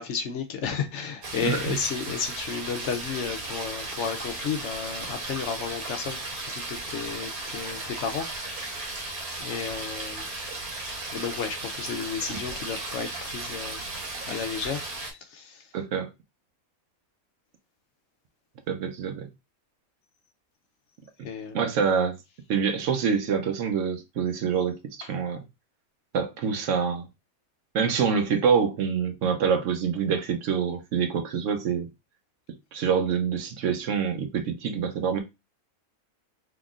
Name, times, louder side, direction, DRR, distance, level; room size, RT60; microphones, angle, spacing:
voice 1, 0.0-9.0 9.4-10.2 11.1-13.8 14.3-14.8 15.3-15.6 21.2-21.6, left 6 dB, 65° left, 0.8 m, -33 dB
sound 1, 1.2-15.1, right 2 dB, 90° right, 1.5 m, -35 dB
voice 2, 1.4-1.8 12.3-12.4 15.7-16.1 18.7-19.3 21.5-22.1 22.5-24.8 25.1-25.4 26.1-27.1 27.7-31.9 32.7-35.2, right 6 dB, 70° right, 0.9 m, -26 dB
3.8 x 2.9 x 2.4 m
omnidirectional pair, 1.5 m